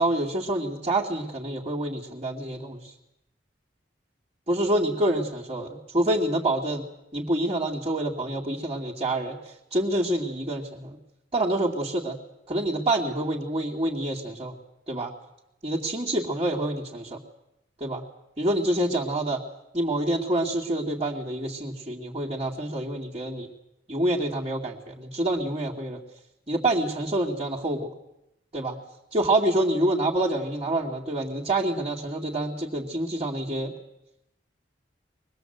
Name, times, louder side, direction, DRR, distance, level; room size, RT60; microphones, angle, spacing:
voice 1, 0.0-2.9 4.5-6.9 7.1-11.0 11.3-12.2 12.5-14.5 14.9-15.1 15.6-17.2 17.8-18.0 18.4-19.4 19.7-23.5 23.9-26.0 26.5-27.9 28.5-28.8 29.1-33.7, right 1 dB, 30° right, -7 dB, 2.5 m, -27 dB
23.5 x 20.0 x 8.0 m, 0.88 s
head